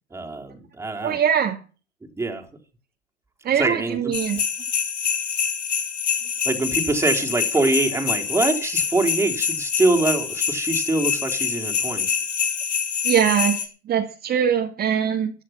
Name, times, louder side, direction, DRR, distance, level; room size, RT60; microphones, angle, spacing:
voice 1, 0.1-1.2 2.1-2.5 3.6-4.1 6.4-12.2, right 2 dB, 5° right, 3.6 m, -24 dB
voice 2, 1.0-1.6 3.4-4.4 13.0-15.3, right 8 dB, 25° right, 2.4 m, -22 dB
sound 1, 4.1-13.6, left 7 dB, 90° left, 6.2 m, -25 dB
16.0 x 11.5 x 5.8 m
hypercardioid pair, 120°, 35 cm